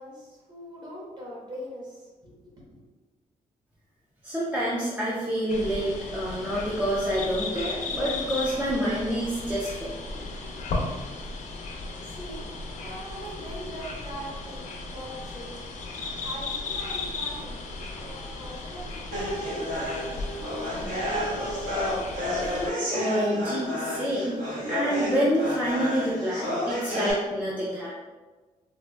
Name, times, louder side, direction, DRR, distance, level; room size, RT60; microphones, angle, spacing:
voice 1, 0.0-2.8 12.0-15.6 16.2-17.6 18.0-20.3, equal, 30° right, -5 dB, 1.0 m, -42 dB
voice 2, 4.2-9.9 22.9-24.4 24.7-27.9, equal, 10° right, -7 dB, 0.4 m, -27 dB
sound 1, 5.5-22.7, left 3 dB, 60° left, 0.5 m, -36 dB
sound 2, 19.1-27.1, equal, 70° right, 1.3 m, -30 dB
4.0 x 2.4 x 2.2 m, 1.3 s
wide cardioid pair, 165°, 14 cm